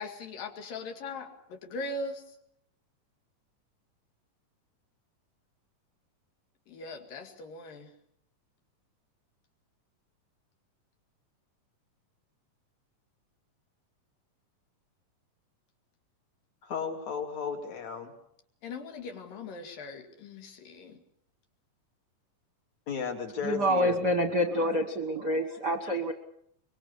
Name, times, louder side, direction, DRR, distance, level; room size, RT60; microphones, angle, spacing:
voice 1, 0.0-2.2 6.7-7.9 18.6-21.0, left 2 dB, 85° left, 5 dB, 4.1 m, -40 dB
voice 2, 16.6-18.1 22.9-24.0, left 6 dB, 55° left, 3 dB, 3.9 m, -34 dB
voice 3, 23.4-26.1, equal, 50° right, 6 dB, 1.3 m, -27 dB
24.0 x 23.0 x 7.2 m, 0.69 s
omnidirectional pair, 3.8 m